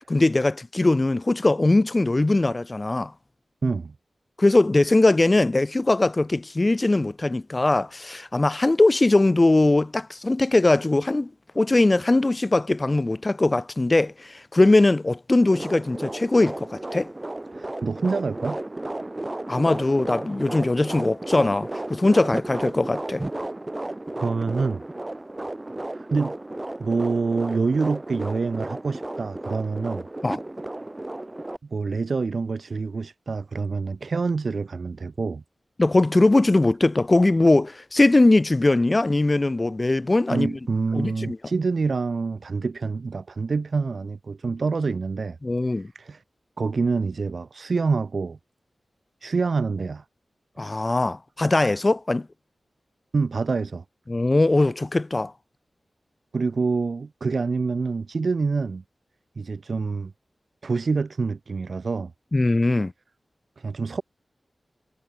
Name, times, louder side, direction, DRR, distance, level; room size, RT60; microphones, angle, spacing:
voice 1, 0.1-3.1 4.4-17.1 19.5-23.2 30.2-30.4 35.8-40.5 40.9-41.4 45.4-45.9 50.6-52.3 54.1-55.3 62.3-62.9, left 2 dB, 30° left, 0.7 m, -20 dB
voice 2, 3.6-3.9 17.5-18.6 24.1-24.8 25.9-26.3 26.8-30.1 31.7-35.4 40.3-45.4 45.9-46.2 46.6-48.4 49.2-50.0 53.1-53.8 56.3-58.8 59.4-60.1 60.6-62.1 63.6-64.0, right 4 dB, 65° right, 2.2 m, -26 dB
sound 1, 15.4-31.6, right 1 dB, 20° right, 1.8 m, -34 dB
wide cardioid pair, 85°, 0 cm